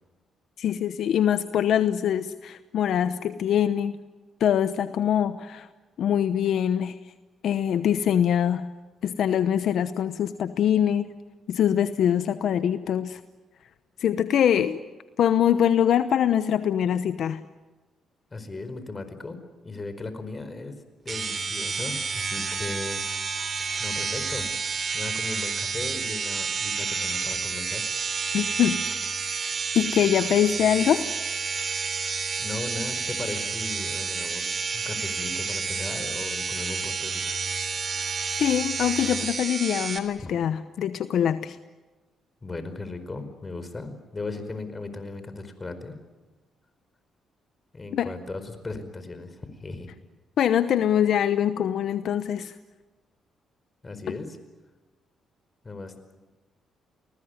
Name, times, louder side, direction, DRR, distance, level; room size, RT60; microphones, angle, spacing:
voice 1, 0.6-4.0 4.4-5.7 6.0-7.0 7.4-8.6 9.0-11.1 11.5-13.2 14.0-14.8 15.2-17.4 28.3-28.8 29.3-29.4 29.7-31.1 38.4-41.6 47.9-48.1 50.4-52.6 54.1-54.2, left 9 dB, 70° left, 11 dB, 0.9 m, -23 dB
voice 2, 18.3-20.7 21.0-23.3 23.8-24.5 24.9-27.9 32.0-37.4 40.2-40.3 42.4-45.9 47.7-50.0 53.8-54.4 55.6-55.9, left 3 dB, 25° left, 10 dB, 4.8 m, -37 dB
sound 1, 21.1-40.0, right 5 dB, 45° right, 3.3 m, -30 dB
29.0 x 20.0 x 9.7 m, 1.2 s
cardioid pair, 80°, 0 cm